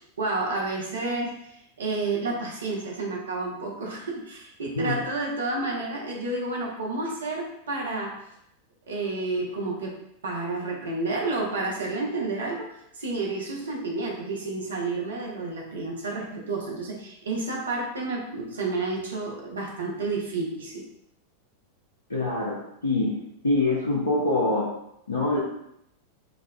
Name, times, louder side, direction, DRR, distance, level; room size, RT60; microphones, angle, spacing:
voice 1, 0.0-1.4 1.8-8.2 8.9-20.8, right 3 dB, 70° right, -2 dB, 0.8 m, -30 dB
voice 2, 22.1-23.2 23.4-24.7 25.1-25.4, left 2 dB, 75° left, -4 dB, 0.6 m, -25 dB
4.8 x 2.4 x 2.2 m, 0.76 s
figure-of-eight pair, 90°, 0 cm